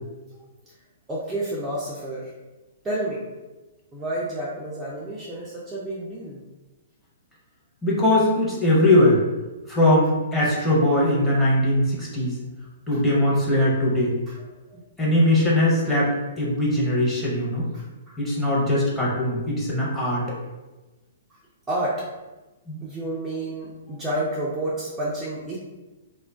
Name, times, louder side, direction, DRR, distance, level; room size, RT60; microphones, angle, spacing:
voice 1, 1.1-2.3 2.8-3.2 3.9-6.4 12.9-13.0 14.3-14.4 14.7-14.8 15.1-15.5 17.7-18.2 18.7-19.0 21.7-22.0 22.8-25.6, right 1 dB, 15° right, -7 dB, 0.4 m, -30 dB
voice 2, 7.8-9.2 9.7-12.3 12.9-14.1 15.0-17.6 18.2-20.2 22.7-22.8, left 1 dB, 5° left, -7 dB, 0.8 m, -20 dB
2.3 x 2.1 x 3.4 m, 1.1 s
figure-of-eight pair, 115°, 0 cm